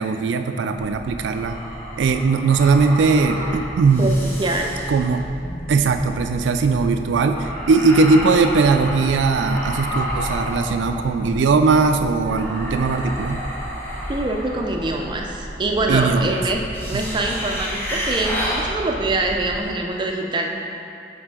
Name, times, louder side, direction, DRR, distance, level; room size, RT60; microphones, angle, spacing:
voice 1, 0.0-1.5 2.0-4.1 4.9-5.3 5.7-13.4 15.9-16.3, right 4 dB, 85° right, 7 dB, 0.3 m, -19 dB
sound 1, 0.8-19.6, equal, 10° left, 0.9 m, -30 dB
voice 2, 4.0-4.8 14.1-16.6 16.9-20.5, right 2 dB, 25° right, 1 dB, 0.5 m, -24 dB
7.1 x 4.1 x 3.7 m, 2.5 s
head